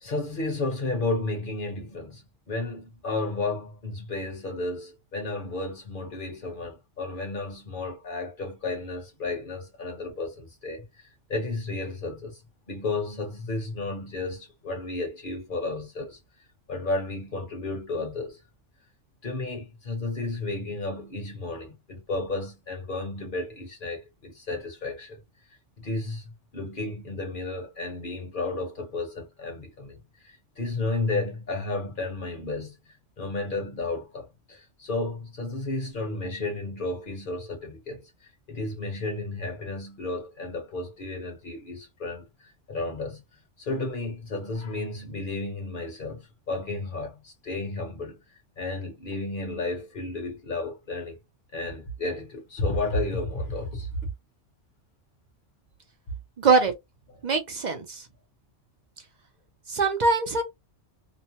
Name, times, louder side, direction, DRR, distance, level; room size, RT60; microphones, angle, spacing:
voice 1, 0.0-12.4 12.7-16.2 16.7-18.4 19.2-25.2 25.8-43.2 43.6-51.2 51.5-53.9, left 2 dB, 45° left, 1.2 m, -33 dB
voice 2, 56.4-56.7 57.2-57.8 59.7-60.4, right 4 dB, 55° right, 0.5 m, -22 dB
2.9 x 2.1 x 2.8 m
omnidirectional pair, 1.3 m